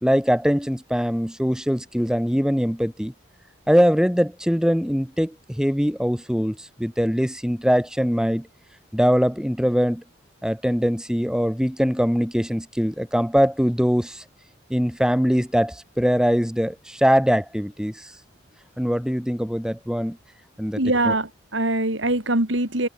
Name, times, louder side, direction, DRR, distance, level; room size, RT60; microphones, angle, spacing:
voice 1, 0.0-3.1 3.7-8.5 8.9-10.0 10.4-14.2 14.7-18.1 18.8-20.2 20.6-21.1, equal, 5° right, 3.0 m, -22 dB
voice 2, 20.8-22.9, right 2 dB, 70° right, 4.3 m, -23 dB
head